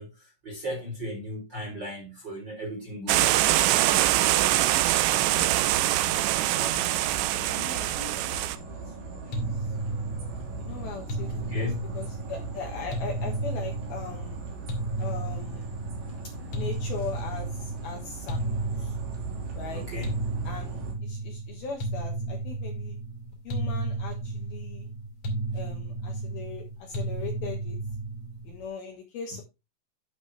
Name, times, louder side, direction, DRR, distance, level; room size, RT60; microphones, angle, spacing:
voice 1, 0.0-4.4 11.3-12.0 19.7-20.2, left 1 dB, 30° right, 2.6 m, -36 dB
sound 1, 3.1-8.6, right 15 dB, 80° right, 2.7 m, -24 dB
sound 2, 5.3-20.9, right 4 dB, 65° right, 5.1 m, -40 dB
voice 2, 6.1-6.5 7.5-9.7 10.6-11.7 11.9-14.4 15.0-15.7 16.5-19.0 19.5-19.8 20.4-23.0 23.4-24.9 25.5-27.8 28.4-29.4, left 5 dB, 65° left, 2.7 m, -40 dB
sound 3, 9.3-28.6, right 2 dB, 40° left, 2.6 m, -33 dB
12.0 x 5.5 x 3.3 m
omnidirectional pair, 5.7 m